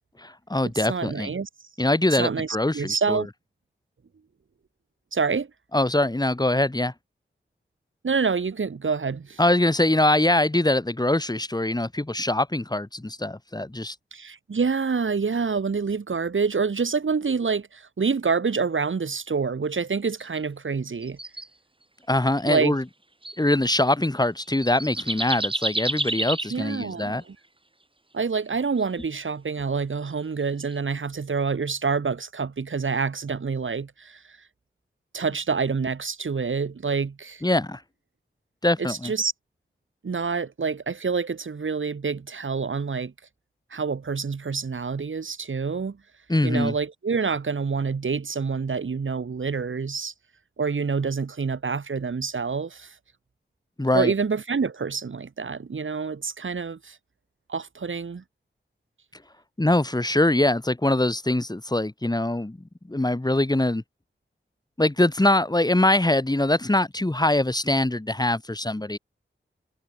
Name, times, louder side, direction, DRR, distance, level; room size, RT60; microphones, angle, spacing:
voice 1, 0.2-1.3 1.8-3.2 5.7-6.9 9.4-13.9 22.1-22.8 23.4-27.2 37.4-37.8 38.6-39.1 46.3-46.7 53.8-54.1 59.6-62.6 62.9-63.8 64.8-69.0, left 1 dB, 20° left, 4.9 m, -23 dB
voice 2, 0.7-1.5 2.2-3.3 5.1-5.5 8.0-9.4 14.1-21.2 22.5-22.8 26.5-27.3 28.1-34.2 35.1-37.4 38.8-39.3 40.0-43.1 43.7-46.0 46.4-50.1 50.6-52.9 53.9-57.0 57.5-58.2, right 5 dB, 80° right, 3.2 m, -27 dB
sound 1, 20.2-20.4 21.0-21.5 22.4-22.7 23.2-23.4 24.2-24.3 24.6-26.6 28.8-29.1 30.5-30.8, right 2 dB, 25° right, 6.8 m, -29 dB
wide cardioid pair, 100°, 20 cm